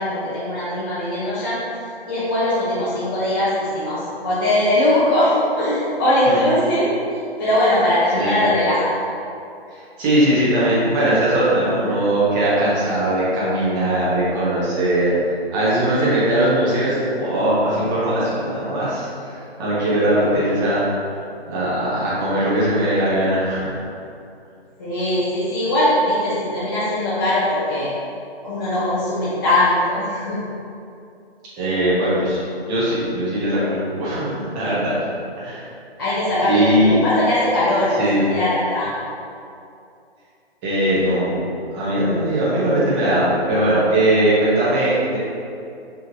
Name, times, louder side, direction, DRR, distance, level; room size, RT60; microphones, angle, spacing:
voice 1, 0.0-1.6 2.1-6.9 7.4-8.9 24.8-27.9 28.4-30.4 36.0-38.9, left 1 dB, 20° left, -11 dB, 0.5 m, -20 dB
voice 2, 9.7-15.1 15.5-20.8 21.5-23.8 31.6-32.4 32.7-34.9 35.4-35.6 36.4-37.0 38.0-38.3 40.6-41.4 41.7-45.2, right 1 dB, 20° right, -9 dB, 1.1 m, -20 dB
4.9 x 3.1 x 2.7 m, 2.5 s
figure-of-eight pair, 145°, 32 cm